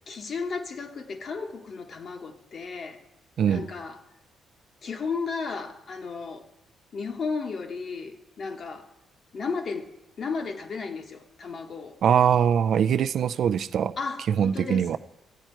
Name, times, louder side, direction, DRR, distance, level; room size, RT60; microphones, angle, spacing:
voice 1, 0.1-3.0 3.5-4.0 4.8-6.5 6.9-8.9 9.3-9.9 10.2-12.0 14.0-15.0, left 4 dB, 50° left, 5 dB, 1.1 m, -34 dB
voice 2, 3.4-3.7 12.0-13.9 14.3-15.0, right 8 dB, 65° right, 13 dB, 0.4 m, -22 dB
15.0 x 9.1 x 4.5 m, 0.91 s
cardioid pair, 90°, 0 cm